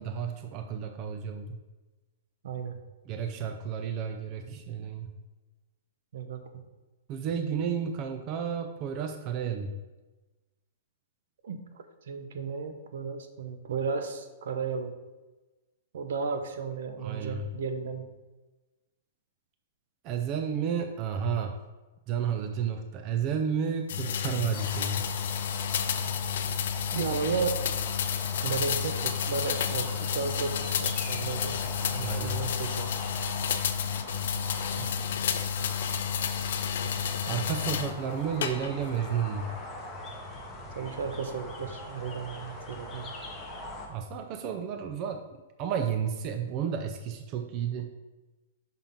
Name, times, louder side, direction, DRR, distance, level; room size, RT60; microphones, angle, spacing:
voice 1, 0.0-1.6 3.1-5.2 7.1-9.8 17.0-17.5 20.0-21.6 22.1-25.1 32.0-32.8 37.3-39.6 43.9-47.9, right 7 dB, 30° right, 6 dB, 0.4 m, -32 dB
voice 2, 2.4-2.8 4.8-4.9 6.1-6.4 11.4-14.9 15.9-18.1 26.9-27.6 28.4-33.0 34.8-35.0 40.7-43.1, right 5 dB, 70° right, 7 dB, 0.8 m, -34 dB
sound 1, 23.9-37.9 38.4-39.0, left 8 dB, 65° left, 0.5 m, -31 dB
sound 2, 24.5-43.9, left 1 dB, 10° left, 0.9 m, -41 dB
5.7 x 3.7 x 5.5 m, 1.2 s
hypercardioid pair, 165°, 0 cm